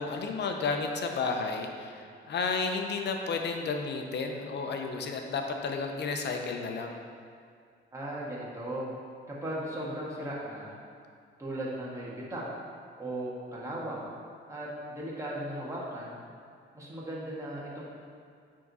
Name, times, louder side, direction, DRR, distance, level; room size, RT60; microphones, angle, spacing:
voice 1, 0.0-7.0, left 4 dB, 60° left, 4 dB, 0.8 m, -32 dB
voice 2, 7.9-8.9 9.3-10.7 11.4-12.4 13.0-14.1 14.5-14.7 14.9-16.2 16.7-17.9, right 1 dB, 15° right, -6 dB, 1.7 m, -37 dB
9.2 x 3.8 x 4.1 m, 2.3 s
cardioid pair, 90°, 20 cm